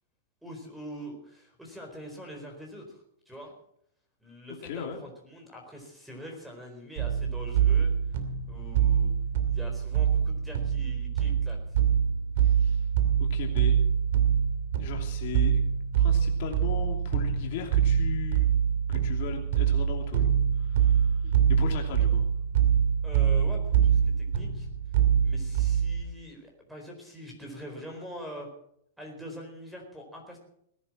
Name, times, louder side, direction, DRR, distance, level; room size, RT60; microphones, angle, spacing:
voice 1, 0.4-3.5 4.2-7.9 8.5-9.1 9.5-11.6 23.0-24.7 25.2-28.5 29.0-30.4, equal, ahead, 2 dB, 4.4 m, -44 dB
voice 2, 4.6-5.0 12.4-12.8 13.2-13.8 14.8-15.6 16.0-18.5 18.9-20.3 20.6-22.3, left 7 dB, 55° left, 3 dB, 2.8 m, -37 dB
sound 1, 7.0-26.0, right 8 dB, 65° right, 2.6 m, -25 dB
18.5 x 10.5 x 6.2 m, 0.70 s
supercardioid pair, 150°, 0 cm